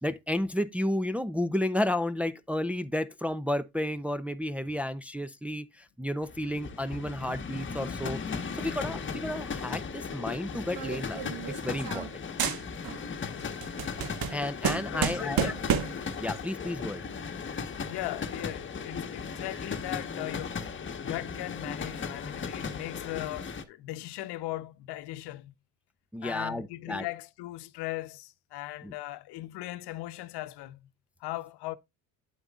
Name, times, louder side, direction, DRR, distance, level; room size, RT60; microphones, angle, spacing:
voice 1, 0.0-12.1 14.3-15.5 16.2-17.0 26.1-27.0 28.8-28.9, left 1 dB, 5° right, 0.6 m, -32 dB
sound 1, 6.2-23.6, left 5 dB, 25° left, 1.3 m, -37 dB
sound 2, 10.8-12.1 12.4-13.1 13.4-16.1, right 8 dB, 55° right, 1.5 m, -31 dB
voice 2, 13.2-13.5 14.9-15.6 17.9-20.7 21.0-25.5 26.2-30.9 31.2-31.8, left 16 dB, 65° left, 0.9 m, -38 dB
9.2 x 8.0 x 2.4 m
supercardioid pair, 100°, 42 cm